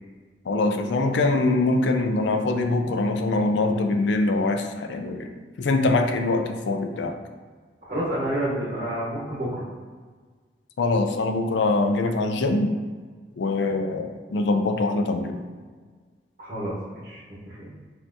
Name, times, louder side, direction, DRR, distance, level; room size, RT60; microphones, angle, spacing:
voice 1, 0.5-5.3 5.6-7.2 10.8-12.7 13.4-15.4, left 2 dB, 90° left, 5 dB, 0.4 m, -23 dB
voice 2, 7.9-9.6 16.4-17.7, right 1 dB, 50° right, -8 dB, 1.0 m, -29 dB
5.5 x 2.7 x 2.6 m, 1.5 s
head